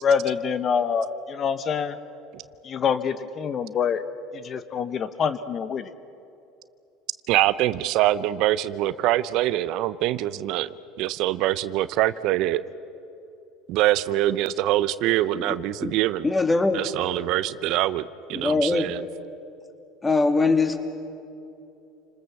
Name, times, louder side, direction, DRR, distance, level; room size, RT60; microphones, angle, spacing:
voice 1, 0.0-2.0 2.6-4.0 4.3-5.9, left 6 dB, 40° left, 12 dB, 1.0 m, -25 dB
voice 2, 7.3-12.6 13.7-16.2 16.7-18.0 18.3-19.0, right 14 dB, 65° right, 16 dB, 0.7 m, -24 dB
voice 3, 15.3-16.0 16.2-16.8 18.3-18.9 20.0-20.8, left 3 dB, 15° left, 7 dB, 2.3 m, -22 dB
29.5 x 20.0 x 7.1 m, 2.8 s
supercardioid pair, 95°, 0 cm